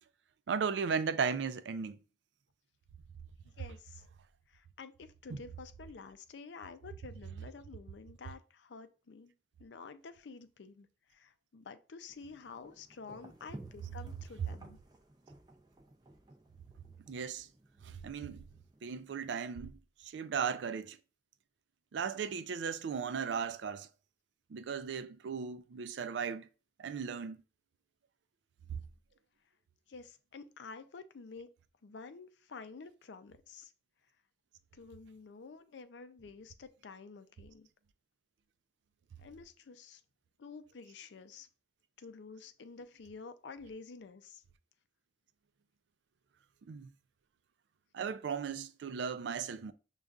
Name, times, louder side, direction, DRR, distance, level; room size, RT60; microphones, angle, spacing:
voice 1, 0.5-2.0 17.1-17.5 17.8-18.4 18.8-21.0 21.9-23.9 24.5-26.5 26.8-27.4 28.7-28.8 46.7-46.9 47.9-49.7, right 6 dB, 85° right, 0.4 m, -36 dB
voice 2, 3.4-4.1 4.5-9.3 9.6-14.8 29.9-31.5 31.8-33.7 34.7-37.7 39.2-40.0 40.4-41.5 42.0-44.4, left 4 dB, 85° left, 0.5 m, -50 dB
sound 1, 12.1-19.3, right 1 dB, 25° right, 0.4 m, -56 dB
6.4 x 2.4 x 2.4 m
head